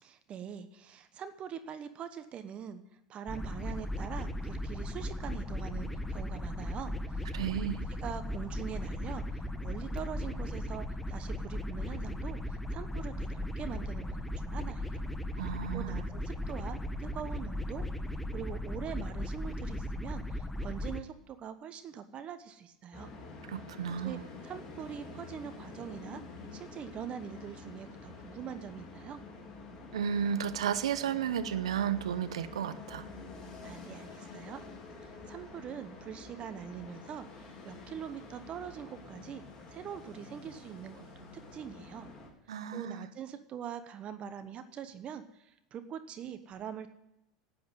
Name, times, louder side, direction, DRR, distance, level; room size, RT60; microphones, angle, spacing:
voice 1, 0.0-2.8 3.1-7.3 8.0-15.0 15.3-15.5 15.7-17.9 18.3-23.1 24.0-24.2 24.4-26.2 26.5-29.2 33.6-34.6 35.0-39.4 39.7-41.0 41.5-42.1 42.7-46.9, right 8 dB, 40° right, 10 dB, 1.1 m, -43 dB
sound 1, 3.3-21.0, left 1 dB, 5° left, 1.0 m, -37 dB
voice 2, 7.3-7.8 15.4-16.0 23.5-24.2 29.9-33.1 42.5-43.1, right 8 dB, 75° right, 12 dB, 0.8 m, -33 dB
sound 2, 22.9-42.3, left 3 dB, 25° left, 3.6 m, -48 dB
12.0 x 8.5 x 9.2 m, 0.85 s
hypercardioid pair, 85°, 3 cm